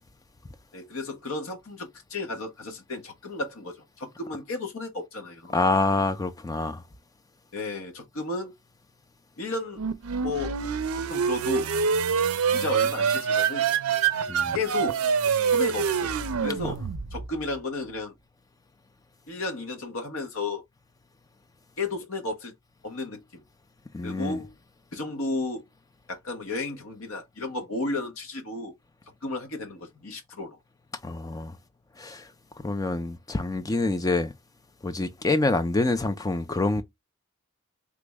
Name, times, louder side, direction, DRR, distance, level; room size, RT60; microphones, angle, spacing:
voice 1, 0.7-5.6 7.5-8.5 9.4-9.8 10.2-10.6 11.1-11.7 12.5-13.7 14.5-15.0 15.5-16.1 16.4-16.8 17.1-18.1 19.3-20.6 21.8-22.5 22.8-23.4 24.0-24.5 24.9-25.6 26.1-28.7 29.2-30.6, left 3 dB, 65° left, 0.8 m, -33 dB
voice 2, 5.5-6.8 14.3-14.6 23.9-24.4 31.0-31.6 32.0-32.3 32.6-34.3 34.8-36.8, left 2 dB, 15° left, 0.3 m, -26 dB
sound 1, 9.8-17.4, right 6 dB, 75° right, 0.4 m, -26 dB
3.4 x 2.0 x 3.4 m
head